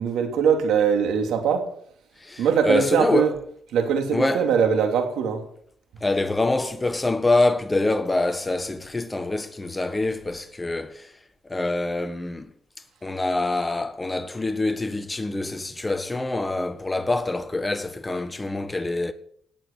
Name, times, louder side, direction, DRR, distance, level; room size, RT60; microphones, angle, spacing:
voice 1, 0.0-1.7 2.4-3.3 3.7-5.4, right 7 dB, 80° right, 3.1 m, -22 dB
voice 2, 2.2-3.3 4.1-4.5 6.0-11.1 11.4-12.5 13.0-19.1, left 2 dB, 15° left, 1.6 m, -25 dB
18.0 x 8.7 x 7.0 m
cardioid pair, 90°, 0 cm